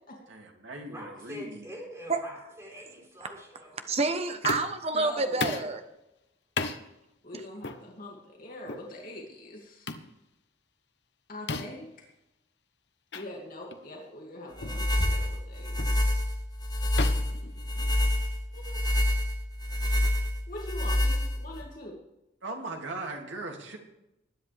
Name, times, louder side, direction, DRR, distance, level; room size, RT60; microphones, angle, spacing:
voice 1, 0.3-1.7 22.4-23.8, right 2 dB, 85° right, 2.6 m, -39 dB
voice 2, 0.8-3.8, equal, 15° right, 4.2 m, -45 dB
voice 3, 3.9-5.8, right 3 dB, 35° right, 1.2 m, -28 dB
sound 1, 4.4-4.9 5.4-5.7 6.6-6.8 7.6-7.8 8.7-8.9 9.9-10.1 11.5-11.9 13.1-13.3 13.7-13.9 14.6-14.8 15.8-16.0 17.0-18.2, left 3 dB, 65° left, 1.0 m, -34 dB
voice 4, 4.9-5.6 7.2-9.9 11.3-11.9 13.1-16.0 18.5-18.8 20.5-22.0, left 1 dB, 50° left, 2.5 m, -43 dB
sound 2, 14.6-21.6, left 1 dB, 20° left, 2.2 m, -27 dB
20.5 x 10.0 x 3.5 m
head